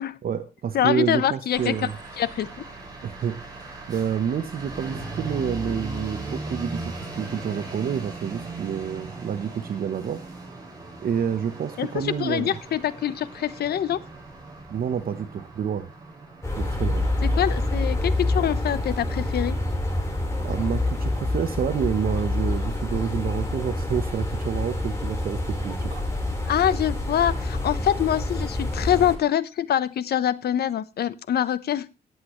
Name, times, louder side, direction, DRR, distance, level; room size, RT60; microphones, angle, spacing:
voice 1, 0.2-1.9 3.0-10.2 11.0-12.6 14.7-15.9 16.6-17.1 20.4-26.1, right 8 dB, 65° right, 10 dB, 1.0 m, -28 dB
voice 2, 0.7-1.9 2.2-2.5 11.8-14.0 17.2-19.5 26.5-31.9, left 10 dB, 75° left, 16 dB, 0.9 m, -25 dB
sound 1, 1.5-18.5, right 2 dB, 25° right, 6.5 m, -38 dB
sound 2, 16.4-29.2, left 2 dB, 15° left, 4.2 m, -27 dB
18.5 x 8.2 x 3.1 m, 0.28 s
cardioid pair, 105°, 16 cm